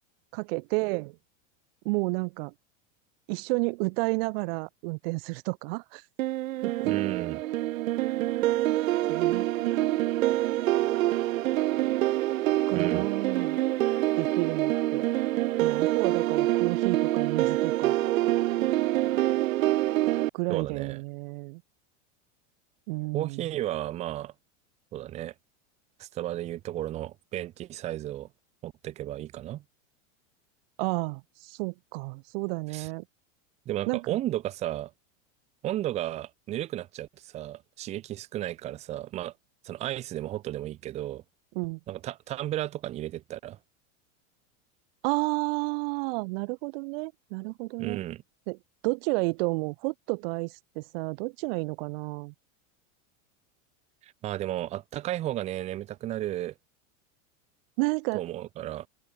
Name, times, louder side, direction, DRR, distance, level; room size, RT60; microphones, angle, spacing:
voice 1, 0.3-1.2 1.8-2.5 3.3-6.0 6.6-7.1 9.1-10.1 12.7-13.6 14.2-15.1 15.6-17.9 20.3-21.6 22.9-23.4 30.8-33.0 33.9-34.2 41.5-41.8 45.0-48.0 48.5-48.6 48.8-52.3 57.8-58.2, right 29 dB, 45° right, 3.3 m, -31 dB
sound 1, 6.2-20.3, right 15 dB, 80° right, 2.3 m, -26 dB
voice 2, 6.8-7.4 12.7-13.1 20.5-21.0 23.1-24.3 24.9-25.3 26.0-28.3 28.6-29.6 32.7-32.9 33.7-34.9 35.6-39.3 39.6-41.2 41.9-43.6 47.8-48.2 54.0-56.5 58.1-58.9, right 14 dB, 15° right, 0.7 m, -33 dB
open air
supercardioid pair, 175°, 39 cm